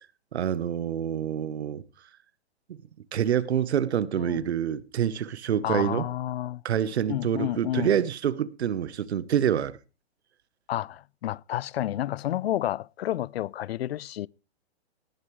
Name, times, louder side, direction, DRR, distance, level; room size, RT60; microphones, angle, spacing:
voice 1, 0.3-1.8 3.1-6.1 6.6-9.8, right 9 dB, 75° right, 1.1 m, -26 dB
voice 2, 5.6-6.6 7.1-7.9 10.7-14.3, left 13 dB, 65° left, 0.5 m, -30 dB
18.0 x 9.6 x 3.2 m
hypercardioid pair, 150°, 33 cm